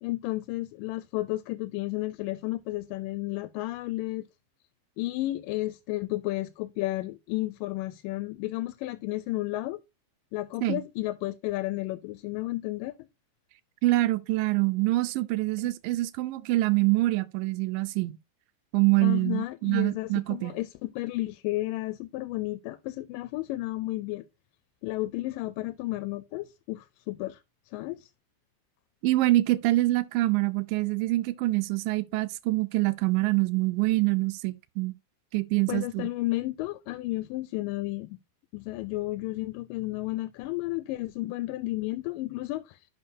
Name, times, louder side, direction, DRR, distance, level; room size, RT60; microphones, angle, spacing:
voice 1, 0.0-4.3 5.0-9.8 10.3-13.1 19.0-24.2 24.8-27.4 27.7-28.1 35.7-38.2 38.5-42.9, left 18 dB, 85° left, 2.2 m, -32 dB
voice 2, 13.8-18.2 18.7-20.5 29.0-34.9 35.3-36.1, right 19 dB, 90° right, 2.3 m, -25 dB
11.5 x 5.2 x 2.7 m
omnidirectional pair, 3.9 m